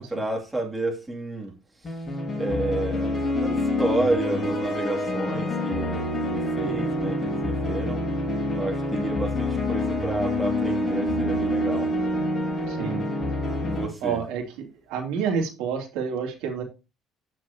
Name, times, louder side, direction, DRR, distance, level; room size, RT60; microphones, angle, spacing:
voice 1, 0.0-1.5 1.8-2.0 2.3-8.0 8.5-11.9 13.6-14.2, right 2 dB, 10° right, 2.6 m, -30 dB
sound 1, 1.8-13.9, left 1 dB, 25° left, 5.5 m, -27 dB
voice 2, 12.7-13.0 14.0-16.6, right 6 dB, 90° right, 2.8 m, -29 dB
14.0 x 6.2 x 2.9 m
cardioid pair, 130°, 0 cm